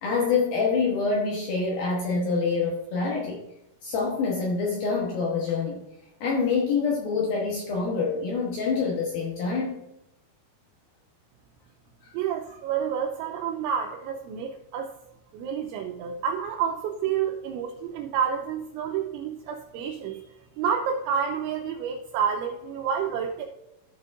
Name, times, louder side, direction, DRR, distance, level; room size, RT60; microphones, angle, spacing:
voice 1, 0.0-3.4 3.8-5.8 6.2-9.8, left 4 dB, 70° left, -2 dB, 2.4 m, -26 dB
voice 2, 12.1-14.9 15.3-20.2 20.6-23.4, right 7 dB, 80° right, 1 dB, 3.0 m, -29 dB
13.5 x 6.1 x 2.6 m, 0.87 s
omnidirectional pair, 5.6 m